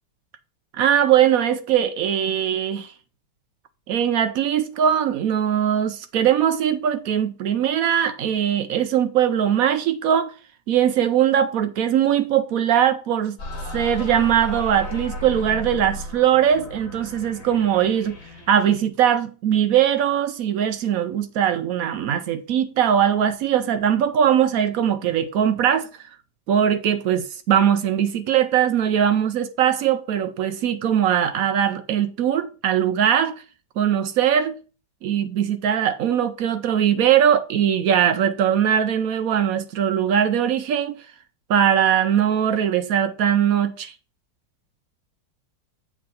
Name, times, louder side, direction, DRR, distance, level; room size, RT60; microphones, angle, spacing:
voice 1, 0.7-2.9 3.9-10.3 10.7-13.4 13.7-18.2 18.5-25.9 26.5-33.4 33.8-34.6 35.0-40.9 41.5-43.9, right 9 dB, 70° right, 0.8 m, -20 dB
sound 1, 13.4-18.9, left 1 dB, 40° left, 1.4 m, -35 dB
7.5 x 3.6 x 5.2 m
omnidirectional pair, 2.0 m